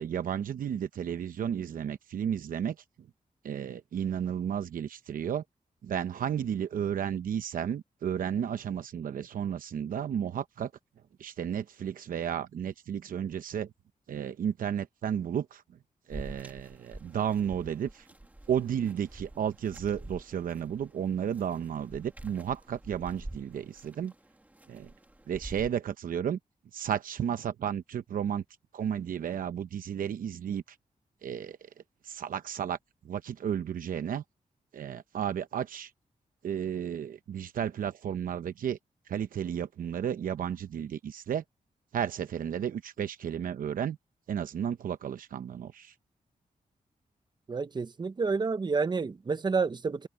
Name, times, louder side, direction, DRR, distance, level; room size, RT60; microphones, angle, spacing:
voice 1, 0.0-2.8 3.4-5.4 5.8-10.7 11.2-13.7 14.1-15.6 16.1-18.1 18.5-24.1 24.7-24.9 25.3-26.4 26.7-28.4 28.7-30.8 31.2-31.6 32.0-32.8 33.0-34.2 34.7-35.9 36.4-38.8 39.1-41.4 41.9-44.0 44.3-45.9, right 8 dB, 80° right, 0.8 m, -33 dB
sound 1, 16.1-25.7, right 1 dB, 10° right, 2.0 m, -47 dB
voice 2, 47.5-50.1, right 4 dB, 30° right, 0.9 m, -29 dB
wide cardioid pair, 150°, 14 cm